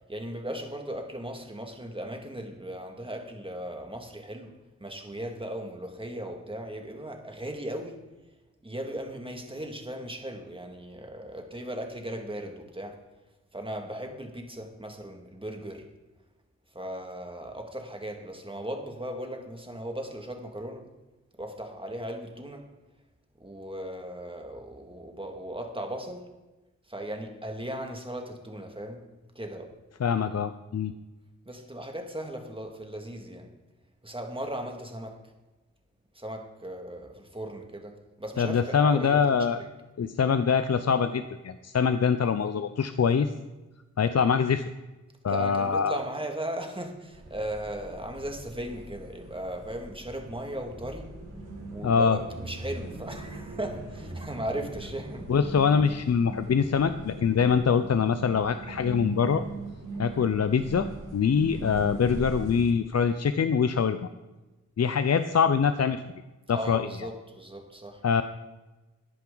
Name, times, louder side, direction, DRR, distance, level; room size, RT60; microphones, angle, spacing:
voice 1, 0.1-4.5 4.8-8.0 8.6-13.0 13.5-15.9 16.7-20.9 21.4-22.7 23.4-26.3 26.9-29.0 29.3-29.7 31.5-33.5 34.0-35.2 36.1-39.2 39.6-39.7 45.3-51.1 51.7-55.3 66.5-68.0, right 1 dB, 15° right, 3 dB, 2.1 m, -37 dB
voice 2, 30.0-30.9 38.4-39.6 40.0-43.3 44.0-44.7 45.2-46.0 51.8-52.2 55.3-59.4 60.0-64.0 64.8-66.0 66.5-66.9 68.0-68.2, left 6 dB, 60° left, 10 dB, 0.6 m, -24 dB
sound 1, 47.1-62.7, right 2 dB, 85° right, 4.5 m, -41 dB
14.0 x 10.5 x 4.0 m, 1.1 s
wide cardioid pair, 70°, 30 cm